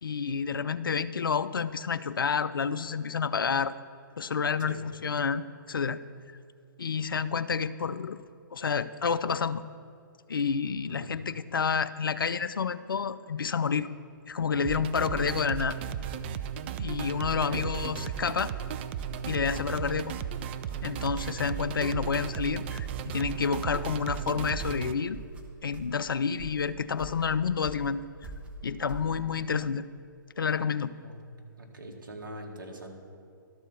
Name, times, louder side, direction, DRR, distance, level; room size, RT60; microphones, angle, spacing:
voice 1, 0.0-3.7 4.2-6.0 6.8-8.2 8.5-9.6 10.3-13.9 14.3-15.8 16.8-18.5 19.3-20.1 20.8-25.2 25.6-28.0 28.6-29.8 30.4-30.9, left 6 dB, 75° left, 14 dB, 0.4 m, -29 dB
sound 1, 14.6-24.9, right 8 dB, 30° right, 0.3 m, -35 dB
voice 2, 17.2-17.7 31.0-31.2 31.6-32.9, right 1 dB, 70° right, 1 dB, 1.5 m, -42 dB
sound 2, 18.9-29.5, right 2 dB, 10° right, 0.7 m, -47 dB
12.5 x 4.5 x 6.9 m, 2.3 s
figure-of-eight pair, 130°, 11 cm